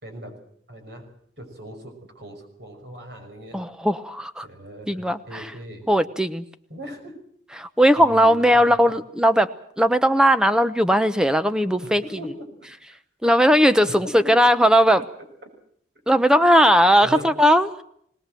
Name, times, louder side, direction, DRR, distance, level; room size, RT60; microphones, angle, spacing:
voice 1, 0.0-0.4 0.7-1.1 1.4-3.6 4.4-5.9 6.7-7.1 8.0-8.8 11.8-13.0 13.8-14.3 17.0-17.3, equal, 65° right, 5 dB, 5.9 m, -39 dB
voice 2, 3.5-4.5 4.9-5.5 5.9-6.4 7.6-9.5 9.8-12.0 13.2-15.0 16.1-17.7, equal, 5° right, 11 dB, 0.9 m, -18 dB
21.5 x 19.0 x 7.7 m, 0.68 s
head